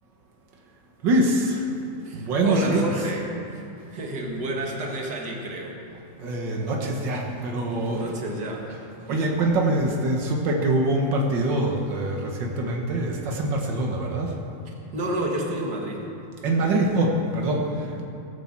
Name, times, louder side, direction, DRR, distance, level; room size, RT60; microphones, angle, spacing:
voice 1, 1.0-1.7 2.1-3.0 4.0-4.1 6.2-8.1 8.7-14.4 16.4-18.0, right 1 dB, 90° right, 0 dB, 0.9 m, -24 dB
voice 2, 2.0-5.8 7.9-8.7 14.6-16.1, right 1 dB, 40° right, 0 dB, 1.6 m, -30 dB
18.5 x 10.0 x 7.4 m, 2.7 s
omnidirectional pair, 4.4 m